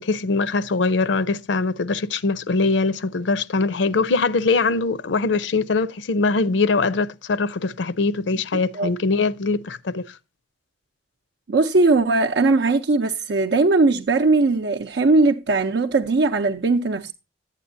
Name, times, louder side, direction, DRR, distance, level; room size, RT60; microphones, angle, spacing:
voice 1, 0.0-10.2, left 3 dB, 80° left, 0.5 m, -22 dB
voice 2, 8.5-8.9 11.5-17.1, right 3 dB, 70° right, 0.6 m, -19 dB
11.5 x 8.2 x 2.6 m
head